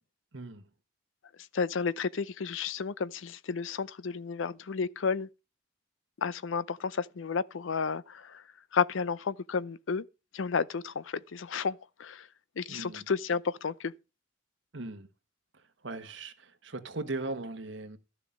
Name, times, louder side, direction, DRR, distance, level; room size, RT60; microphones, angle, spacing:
voice 1, 0.3-0.7 12.7-13.0 14.7-15.1 15.5-18.0, right 2 dB, 75° right, 1.4 m, -39 dB
voice 2, 1.5-5.3 6.2-8.4 8.7-10.1 10.3-12.3 12.6-13.9, left 5 dB, 85° left, 0.5 m, -32 dB
12.5 x 6.6 x 5.1 m
head